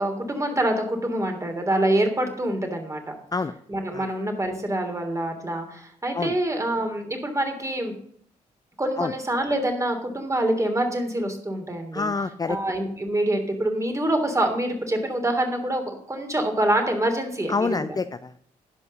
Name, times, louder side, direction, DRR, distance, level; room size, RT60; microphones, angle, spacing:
voice 1, 0.0-3.1 3.7-7.9 8.8-12.1 12.5-17.9, right 1 dB, 20° right, 5 dB, 3.1 m, -25 dB
voice 2, 11.9-12.6 17.5-18.5, left 4 dB, 25° left, 11 dB, 0.6 m, -27 dB
11.0 x 5.5 x 6.8 m, 0.63 s
supercardioid pair, 55°, 14 cm